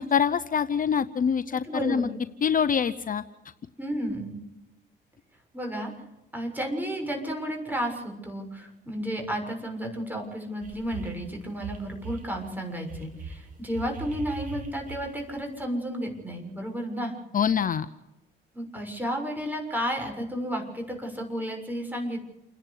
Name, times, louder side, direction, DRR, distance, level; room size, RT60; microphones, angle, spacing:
voice 1, 0.0-2.1 2.4-3.2 17.3-17.9, left 7 dB, 45° left, 11 dB, 0.8 m, -25 dB
voice 2, 1.5-2.2 3.8-4.4 5.5-5.9 6.3-17.1 18.5-22.2, equal, 10° right, 2 dB, 6.7 m, -32 dB
sound 1, 10.6-11.2 11.6-12.3 12.9-15.4, right 4 dB, 45° right, 5.1 m, -40 dB
29.0 x 11.0 x 8.4 m, 0.97 s
cardioid pair, 90°, 20 cm